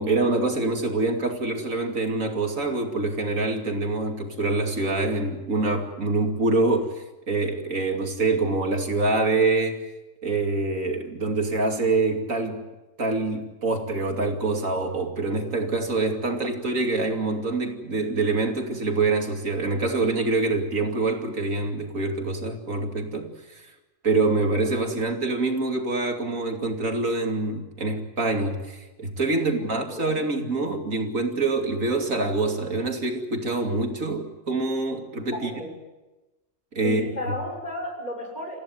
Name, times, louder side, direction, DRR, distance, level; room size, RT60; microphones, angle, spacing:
voice 1, 0.0-9.8 10.2-12.6 13.0-23.6 24.0-35.5 36.7-37.0, right 3 dB, 90° right, 3 dB, 3.1 m, -25 dB
voice 2, 29.3-30.1 35.4-35.7 36.8-38.6, left 1 dB, 30° left, 0 dB, 6.8 m, -34 dB
29.0 x 15.5 x 9.5 m, 1.1 s
omnidirectional pair, 1.4 m